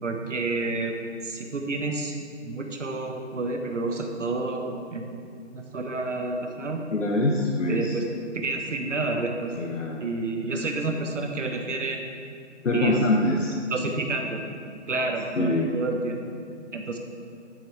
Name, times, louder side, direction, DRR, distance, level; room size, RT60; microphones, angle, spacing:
voice 1, 0.0-0.9 1.2-2.2 2.4-5.2 5.5-6.9 7.7-8.0 8.3-9.5 10.0-12.1 12.7-13.1 13.7-14.5 14.9-16.4 16.7-17.0, right 3 dB, 80° right, 3 dB, 1.3 m, -29 dB
voice 2, 6.9-7.9 9.5-10.1 12.6-13.5 15.4-15.7, left 2 dB, 90° left, 0 dB, 1.1 m, -24 dB
10.5 x 8.6 x 3.3 m, 2.3 s
hypercardioid pair, 155°, 36 cm